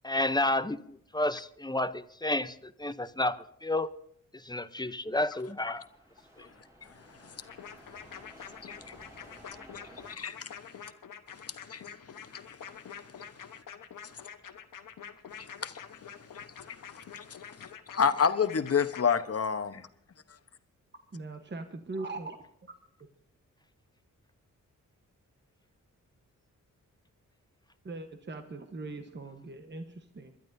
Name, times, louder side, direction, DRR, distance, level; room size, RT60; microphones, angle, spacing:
voice 1, 0.0-3.9 4.4-5.8, left 2 dB, 15° left, 13 dB, 0.6 m, -31 dB
sound 1, 5.3-10.1, right 1 dB, 10° right, 3.2 m, -55 dB
voice 2, 6.8-7.9 8.6-9.1 9.8-10.8 11.3-13.6 14.0-14.3 15.3-19.9, left 6 dB, 50° left, 11 dB, 1.0 m, -33 dB
sound 2, 7.5-19.1, left 8 dB, 85° left, 1.1 m, -46 dB
voice 3, 21.1-22.4 27.8-30.3, right 3 dB, 35° right, 6 dB, 1.1 m, -40 dB
27.0 x 12.0 x 2.7 m, 0.67 s
cardioid pair, 70°, 31 cm